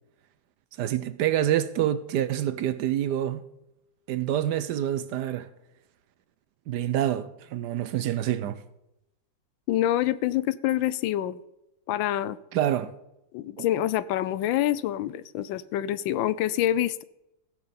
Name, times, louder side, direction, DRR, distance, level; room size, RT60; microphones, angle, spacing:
voice 1, 0.8-3.4 4.1-5.5 6.7-8.6 12.5-12.9 13.6-13.7, right 11 dB, 70° right, 1.1 m, -27 dB
voice 2, 9.7-11.4 11.9-12.4 13.3-17.0, left 12 dB, 85° left, 1.3 m, -26 dB
16.0 x 6.2 x 7.0 m
omnidirectional pair, 2.1 m